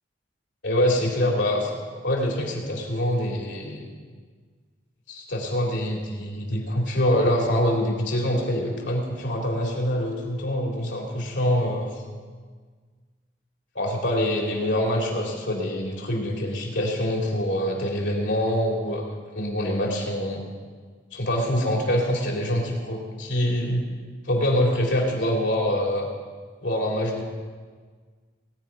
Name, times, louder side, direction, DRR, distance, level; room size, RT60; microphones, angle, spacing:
voice 1, 0.6-1.7 2.0-3.9 5.1-12.0 13.7-19.1 19.3-20.4 21.1-23.8 24.2-26.1 26.6-27.2, equal, 80° left, -1 dB, 3.4 m, -25 dB
19.0 x 9.8 x 5.2 m, 1.5 s
head